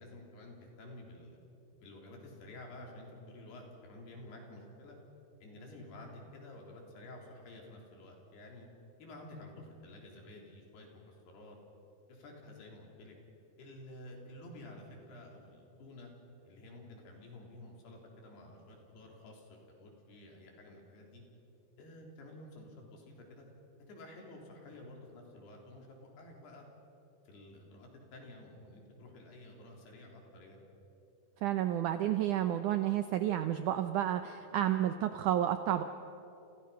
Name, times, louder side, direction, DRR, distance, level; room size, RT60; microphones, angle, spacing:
voice 1, 0.0-1.4 1.8-5.0 5.4-8.7 9.0-11.6 12.1-13.2 13.6-16.1 16.4-21.2 21.8-23.5 23.9-26.7 27.3-30.6, left 1 dB, 80° left, 0 dB, 5.6 m, -51 dB
voice 2, 31.4-35.8, right 11 dB, 90° right, 9 dB, 1.7 m, -31 dB
29.5 x 29.5 x 5.7 m, 3.0 s
omnidirectional pair, 4.6 m